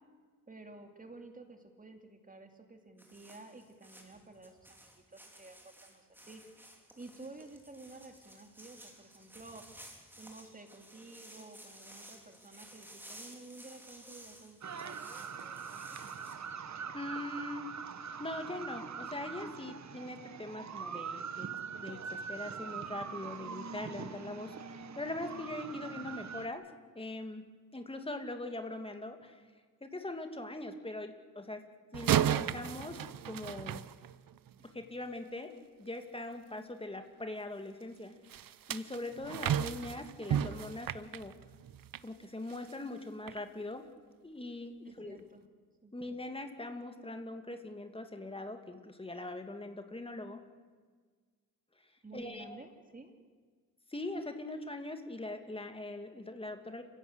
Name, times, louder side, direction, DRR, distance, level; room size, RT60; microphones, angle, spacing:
voice 1, 0.5-6.4 6.9-9.6 10.2-16.2 44.8-45.5 45.8-45.9 52.0-53.1, right 2 dB, 25° right, 5 dB, 2.6 m, -52 dB
sound 1, 3.0-16.3, right 1 dB, 5° right, 4.2 m, -55 dB
sound 2, 14.6-26.5, right 6 dB, 55° right, 1.3 m, -43 dB
voice 2, 16.9-26.6 26.9-29.5 29.8-31.6 31.9-33.9 34.6-35.5 35.8-38.2 38.7-41.3 42.0-43.9 44.2-45.2 45.9-50.4 52.1-52.5 53.9-56.8, left 2 dB, 15° left, 6 dB, 2.4 m, -42 dB
sound 3, 31.9-34.5 38.3-42.1 42.5-42.7 43.3-43.4, right 10 dB, 90° right, 0.8 m, -34 dB
30.0 x 16.5 x 8.2 m, 1.5 s
wide cardioid pair, 115°, 33 cm